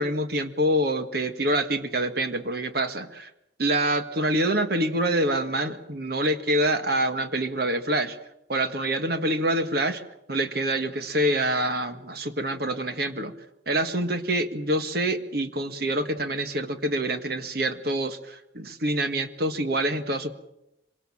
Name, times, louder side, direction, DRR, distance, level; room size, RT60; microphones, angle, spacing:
voice 1, 0.0-3.3 3.6-8.2 8.5-10.0 10.3-13.3 13.7-20.3, right 1 dB, 60° right, 9 dB, 1.8 m, -26 dB
25.5 x 24.5 x 7.3 m, 0.86 s
head